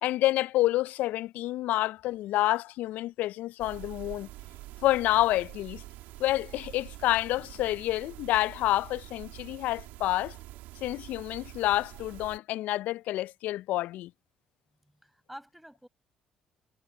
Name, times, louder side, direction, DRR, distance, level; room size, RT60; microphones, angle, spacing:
voice 1, 0.0-4.3 4.8-5.8 6.2-10.4 10.8-14.1, left 16 dB, 65° left, 0.7 m, -28 dB
sound 1, 3.6-12.4, right 17 dB, 70° right, 3.7 m, -46 dB
voice 2, 14.8-15.9, equal, 5° right, 6.7 m, -48 dB
hypercardioid pair, 50°, 3 cm